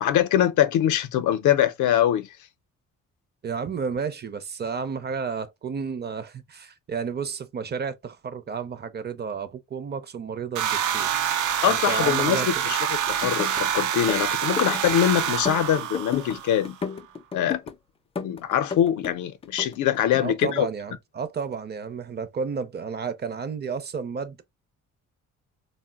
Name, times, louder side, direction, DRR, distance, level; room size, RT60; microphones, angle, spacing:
voice 1, 0.0-2.3 11.6-16.8 17.3-17.6 18.2-20.7, left 10 dB, 75° left, 0.5 m, -23 dB
voice 2, 3.4-11.2 11.6-12.5 20.2-24.4, right 6 dB, 35° right, 0.5 m, -32 dB
sound 1, 10.6-16.7, right 9 dB, 80° right, 0.5 m, -26 dB
sound 2, 13.1-13.6 13.9-15.0 15.3-16.4 16.6-17.7 18.2-19.2 19.4-20.6, left 6 dB, 20° left, 0.4 m, -33 dB
3.6 x 2.1 x 2.2 m
cardioid pair, 90°, 30 cm